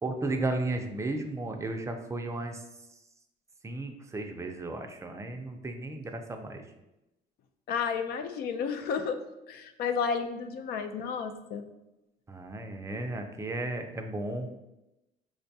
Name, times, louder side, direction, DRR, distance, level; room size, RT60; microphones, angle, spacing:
voice 1, 0.0-2.6 3.6-6.6 12.3-14.5, right 2 dB, 15° right, 4 dB, 0.4 m, -34 dB
voice 2, 7.7-9.2 9.5-11.6, left 6 dB, 65° left, 8 dB, 0.4 m, -32 dB
4.6 x 2.2 x 2.7 m, 0.94 s
cardioid pair, 110°, 17 cm